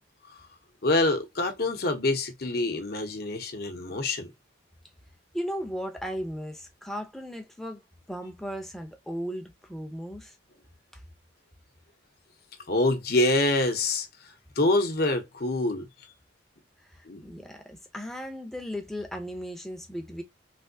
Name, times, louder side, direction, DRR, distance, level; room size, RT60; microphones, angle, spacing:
voice 1, 0.8-4.3 12.7-14.1 14.6-16.1 17.1-17.2, left 2 dB, 50° left, 0.8 m, -26 dB
voice 2, 5.3-10.4 10.9-11.0 16.9-20.2, equal, ahead, 0.6 m, -36 dB
3.4 x 2.7 x 2.7 m
head